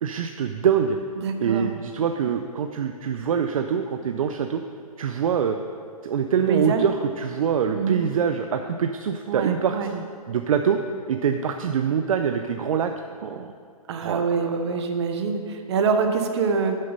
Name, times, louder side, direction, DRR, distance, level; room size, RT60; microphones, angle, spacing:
voice 1, 0.0-1.0 1.4-4.6 5.0-5.6 6.0-10.8 11.1-12.9 13.2-13.5 14.0-14.3, right 7 dB, 65° right, 7 dB, 0.5 m, -24 dB
voice 2, 1.2-1.7 6.5-6.8 7.7-8.0 9.3-9.9 13.9-16.8, right 5 dB, 45° right, 6 dB, 0.9 m, -25 dB
7.9 x 6.4 x 5.4 m, 2.2 s
hypercardioid pair, 150°, 19 cm